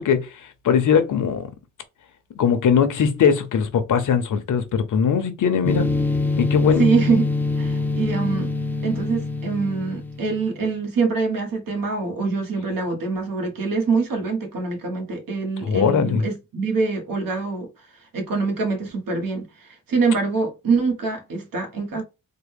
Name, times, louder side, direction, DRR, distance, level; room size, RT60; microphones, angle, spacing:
voice 1, 0.0-1.5 2.3-5.9 6.4-6.9 15.6-16.2, left 7 dB, 65° left, 0.7 m, -20 dB
sound 1, 5.6-10.5, left 3 dB, 5° left, 0.5 m, -24 dB
voice 2, 6.8-7.2 7.6-8.5 8.8-17.7 18.1-22.0, right 4 dB, 80° right, 1.3 m, -24 dB
3.7 x 2.1 x 3.5 m
wide cardioid pair, 145°, 33 cm